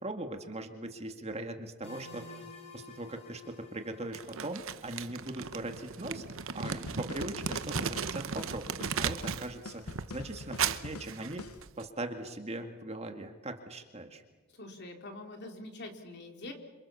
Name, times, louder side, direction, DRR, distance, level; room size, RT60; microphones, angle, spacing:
voice 1, 0.0-2.4 2.7-9.8 10.1-11.4 11.8-14.2, right 1 dB, 30° right, 5 dB, 2.0 m, -40 dB
sound 1, 1.8-5.5, left 3 dB, 30° left, 5.4 m, -52 dB
Crumpling crinkling, 4.1-9.5 9.8-11.8, right 6 dB, 60° right, 0.9 m, -36 dB
sound 2, 6.7-11.6, left 3 dB, 75° left, 0.8 m, -45 dB
voice 2, 14.5-16.5, left 2 dB, 50° left, 4 dB, 3.7 m, -44 dB
27.5 x 27.0 x 7.1 m, 1.2 s
head